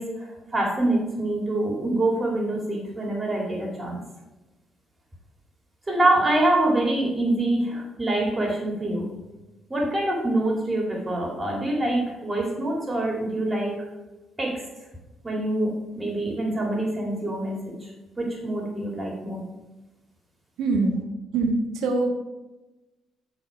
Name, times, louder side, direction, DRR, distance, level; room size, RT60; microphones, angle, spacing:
voice 1, 0.0-4.0 5.9-9.1 9.7-13.9 14.4-14.6 15.2-17.9 18.2-19.4, right 1 dB, 20° right, -2 dB, 2.1 m, -25 dB
voice 2, 20.6-21.0 21.3-22.1, right 3 dB, 85° right, 2 dB, 1.3 m, -23 dB
10.0 x 4.0 x 4.9 m, 1.1 s
cardioid pair, 90°, 0 cm